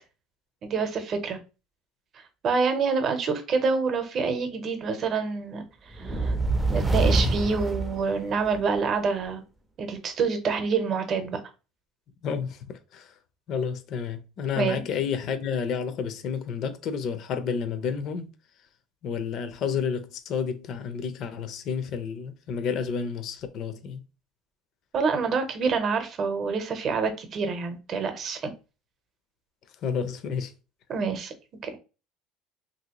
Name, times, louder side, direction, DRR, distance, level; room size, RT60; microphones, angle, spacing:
voice 1, 0.6-1.4 2.4-5.6 5.9-6.3 6.7-9.4 9.8-11.4 14.5-14.8 24.9-28.5 30.9-31.3 31.6-31.7, right 5 dB, 40° right, 0.7 m, -27 dB
sound 1, 5.9-8.7, right 2 dB, 5° right, 0.4 m, -25 dB
voice 2, 12.2-13.1 13.5-18.3 19.0-24.0 29.8-30.5, left 6 dB, 50° left, 0.5 m, -30 dB
3.0 x 2.7 x 2.9 m
cardioid pair, 125°, 0 cm